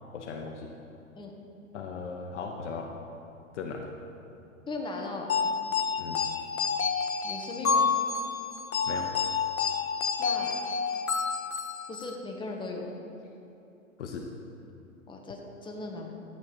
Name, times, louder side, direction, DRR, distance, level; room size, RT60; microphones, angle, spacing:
voice 1, 0.1-0.7 1.7-2.9 3.5-3.9 6.0-6.3 8.9-9.1 14.0-14.3, left 5 dB, 60° left, 2 dB, 1.2 m, -37 dB
voice 2, 4.7-5.3 7.2-7.9 10.2-10.5 11.9-13.0 15.1-16.2, left 3 dB, 10° left, 0 dB, 1.6 m, -37 dB
sound 1, 5.3-12.2, left 5 dB, 80° left, 0.9 m, -29 dB
14.5 x 9.4 x 4.7 m, 2.7 s
figure-of-eight pair, 110°, 40 cm